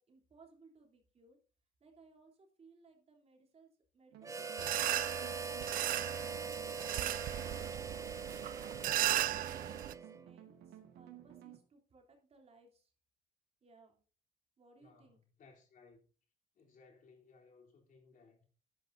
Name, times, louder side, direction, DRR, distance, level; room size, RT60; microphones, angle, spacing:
voice 1, 0.0-1.4 1.8-5.5 9.5-12.9 13.6-14.0 14.6-15.2, right 3 dB, 35° right, 3.4 m, -64 dB
sound 1, 4.1-11.6, right 10 dB, 75° right, 2.0 m, -55 dB
Harmonica, 4.2-10.3, right 5 dB, 20° right, 0.6 m, -42 dB
sound 2, 4.6-9.9, right 13 dB, 55° right, 0.4 m, -36 dB
voice 2, 14.8-16.0 16.5-18.5, left 4 dB, 50° left, 3.5 m, -62 dB
12.5 x 10.5 x 2.7 m
cardioid pair, 110°, 17 cm